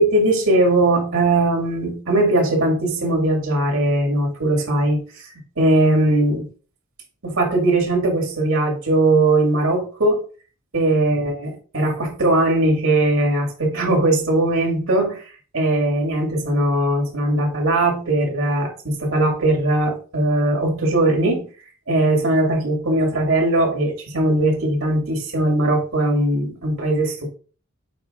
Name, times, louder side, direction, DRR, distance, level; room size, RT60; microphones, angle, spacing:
voice 1, 0.0-5.3 5.6-6.5 7.2-10.2 10.7-21.5 21.9-27.3, right 2 dB, 80° right, 0 dB, 2.4 m, -19 dB
7.6 x 5.0 x 2.5 m, 0.38 s
head